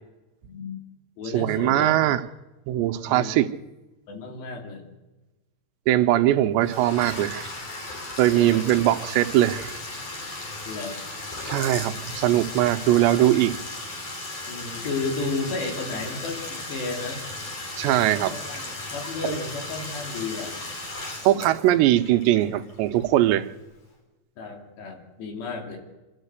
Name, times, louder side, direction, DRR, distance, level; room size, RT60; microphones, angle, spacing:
voice 1, 0.4-0.8 1.2-2.1 3.0-3.3 4.1-4.9 8.3-8.6 10.6-11.0 14.5-17.2 18.3-20.5 24.4-25.8, left 3 dB, 70° left, 4.9 m, -33 dB
voice 2, 1.3-2.2 2.7-3.5 5.9-7.5 8.2-9.7 11.5-13.6 17.8-18.4 19.3-19.4 21.2-23.5, right 13 dB, 80° right, 3.0 m, -21 dB
Bathtub (filling or washing), 6.6-23.3, left 2 dB, 35° left, 4.1 m, -36 dB
26.0 x 13.5 x 8.1 m
omnidirectional pair, 5.1 m